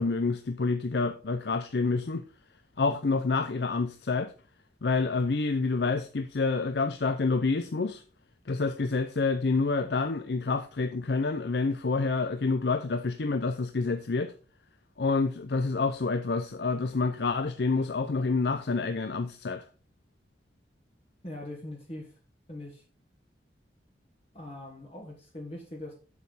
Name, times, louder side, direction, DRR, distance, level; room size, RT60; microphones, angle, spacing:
voice 1, 0.0-2.2 2.8-4.3 4.8-8.0 8.5-14.3 15.0-19.6, left 3 dB, 65° left, 0.6 m, -28 dB
voice 2, 21.2-22.1 22.5-22.8 24.3-25.9, left 1 dB, 35° left, 1.6 m, -41 dB
8.1 x 7.3 x 4.0 m
head